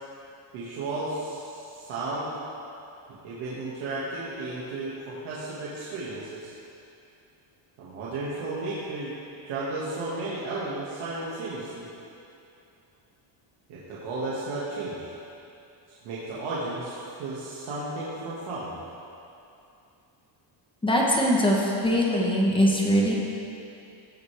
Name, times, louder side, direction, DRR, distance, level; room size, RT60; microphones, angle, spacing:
voice 1, 0.5-2.3 3.1-6.5 7.8-9.1 9.5-11.9 13.7-15.1 15.9-18.8, right 2 dB, 70° right, -8 dB, 1.9 m, -34 dB
voice 2, 20.8-23.1, equal, 10° left, -3 dB, 1.0 m, -22 dB
16.0 x 8.1 x 3.4 m, 2.7 s
cardioid pair, 175°, 50 cm